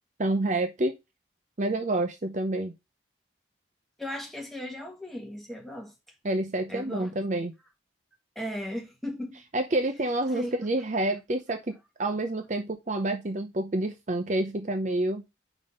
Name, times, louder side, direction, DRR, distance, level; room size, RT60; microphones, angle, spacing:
voice 1, 0.2-0.9 1.6-2.7 6.2-7.5 9.5-15.2, right 1 dB, 40° right, 0.6 m, -28 dB
voice 2, 4.0-5.9 6.7-7.1 8.3-9.4 10.3-10.5, equal, ahead, 1.6 m, -36 dB
5.3 x 4.1 x 5.2 m
head